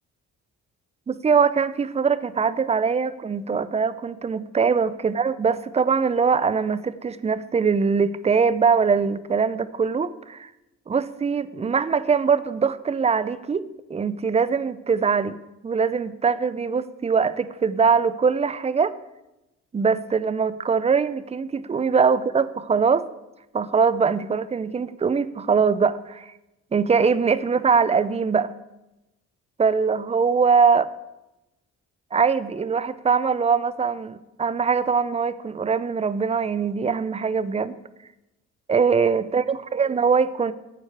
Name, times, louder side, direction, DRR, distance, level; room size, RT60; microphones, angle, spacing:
voice 1, 1.1-10.5 10.9-15.4 15.6-19.0 19.7-23.1 23.5-26.3 26.7-28.5 29.6-30.9 32.1-37.7 38.7-40.5, right 5 dB, 20° right, 15 dB, 0.5 m, -22 dB
9.5 x 8.2 x 4.6 m, 0.95 s
cardioid pair, 90°, 30 cm